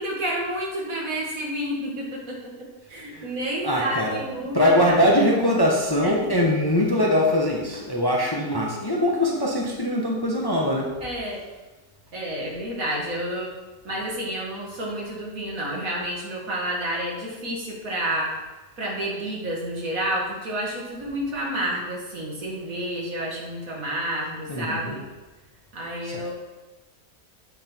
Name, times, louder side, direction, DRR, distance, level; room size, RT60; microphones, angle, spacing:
voice 1, 0.0-5.0 6.0-6.3 11.0-11.4 12.1-13.5 13.8-18.4 18.8-25.0 25.7-26.3, right 1 dB, 65° right, -2 dB, 2.3 m, -30 dB
voice 2, 2.9-3.3 3.6-4.2 4.5-11.0 24.5-25.0 26.0-26.3, left 1 dB, 15° left, -2 dB, 1.0 m, -22 dB
8.7 x 5.9 x 4.5 m, 1.2 s
omnidirectional pair, 1.6 m